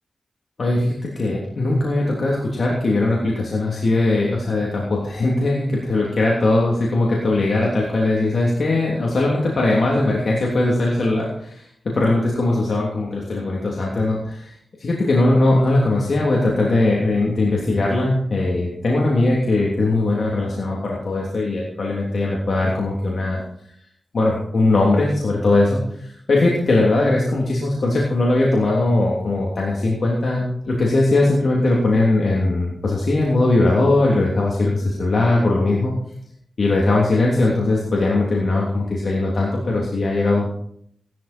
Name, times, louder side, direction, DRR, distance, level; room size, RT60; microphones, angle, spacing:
voice 1, 0.6-14.5 14.8-23.4 24.1-35.9 36.6-40.5, left 2 dB, 65° left, -3 dB, 3.1 m, -20 dB
16.0 x 12.5 x 4.5 m, 0.69 s
wide cardioid pair, 75°, 0 cm